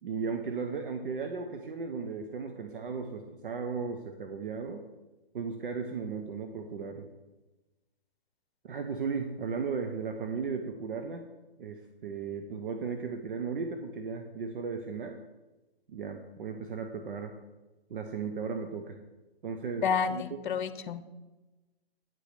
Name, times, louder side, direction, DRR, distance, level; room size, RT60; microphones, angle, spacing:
voice 1, 0.0-4.8 5.3-7.1 8.6-11.2 11.6-15.2 15.9-17.3 17.9-19.0 19.4-20.4, right 5 dB, 60° right, 5 dB, 1.0 m, -36 dB
voice 2, 19.8-21.0, left 6 dB, 55° left, 12 dB, 0.9 m, -30 dB
9.5 x 5.1 x 6.7 m, 1.1 s
hypercardioid pair, 135°, 30 cm